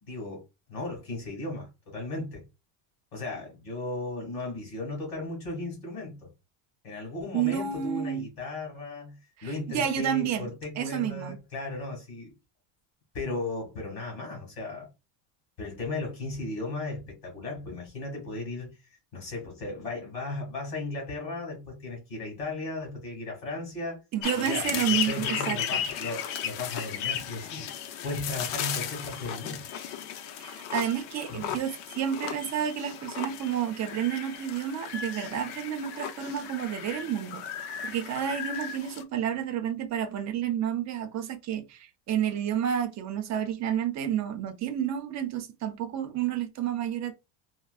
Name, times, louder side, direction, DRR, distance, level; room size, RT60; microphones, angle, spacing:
voice 1, 0.0-0.4 0.7-2.4 3.1-6.3 6.8-12.3 13.1-14.9 15.6-18.8 19.1-24.0 24.3-27.7 28.0-29.6 31.3-31.6, left 2 dB, 50° left, 2.0 m, -36 dB
voice 2, 7.3-8.2 9.4-10.5 10.8-11.4 24.1-25.8 30.4-37.4 37.8-41.8 42.1-47.1, right 9 dB, 35° right, 0.5 m, -30 dB
sound 1, 24.2-39.0, left 9 dB, 80° left, 0.7 m, -35 dB
4.4 x 2.1 x 2.3 m
cardioid pair, 150°, 48 cm